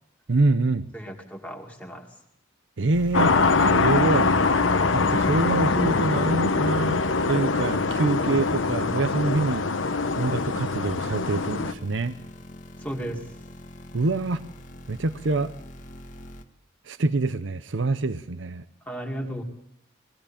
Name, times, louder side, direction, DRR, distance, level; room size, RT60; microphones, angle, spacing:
voice 1, 0.3-0.9 2.8-4.3 4.9-7.0 7.3-9.6 10.2-12.1 13.9-14.4 14.9-15.5 16.9-18.7, right 3 dB, 75° right, 13 dB, 0.7 m, -25 dB
voice 2, 0.9-2.1 12.8-13.2 18.9-19.4, right 1 dB, 10° left, 1 dB, 2.2 m, -34 dB
sound 1, 2.9-16.4, left 1 dB, 40° left, 1.5 m, -44 dB
sound 2, 3.1-11.7, left 4 dB, 90° left, 1.0 m, -23 dB
21.0 x 16.0 x 8.6 m, 0.76 s
head